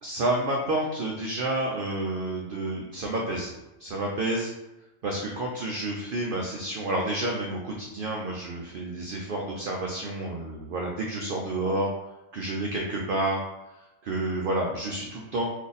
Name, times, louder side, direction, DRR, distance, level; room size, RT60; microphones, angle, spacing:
voice 1, 0.0-3.5 3.8-4.5 5.0-11.9 12.3-13.4 14.0-15.4, right 2 dB, 75° right, -1 dB, 0.4 m, -29 dB
2.7 x 2.5 x 3.9 m, 0.97 s
omnidirectional pair, 1.5 m